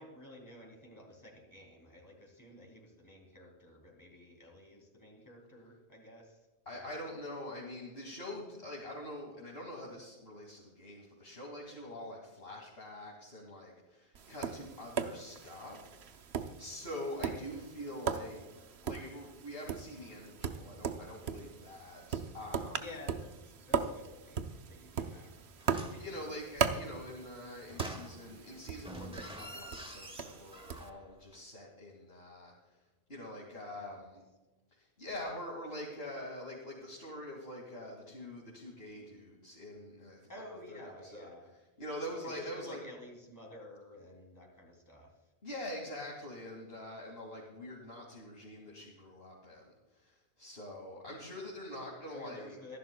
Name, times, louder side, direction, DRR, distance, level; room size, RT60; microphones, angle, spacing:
voice 1, 0.0-6.5 6.7-6.8 22.7-25.4 33.7-33.8 40.3-41.5 42.2-45.2 52.1-52.8, left 1 dB, 20° left, -1 dB, 3.1 m, -52 dB
voice 2, 6.7-16.3 16.6-22.9 25.8-32.8 33.1-34.2 34.7-40.3 40.7-41.3 41.8-42.8 45.4-52.6, left 1 dB, 70° left, -3 dB, 2.6 m, -45 dB
Tap, 14.2-30.9, right 6 dB, 85° right, 1.1 m, -39 dB
sound 1, 25.6-26.1 27.7-28.5 28.8-31.1 31.3-31.4, equal, 5° right, 1.1 m, -47 dB
24.5 x 11.5 x 2.3 m, 1.1 s
omnidirectional pair, 1.0 m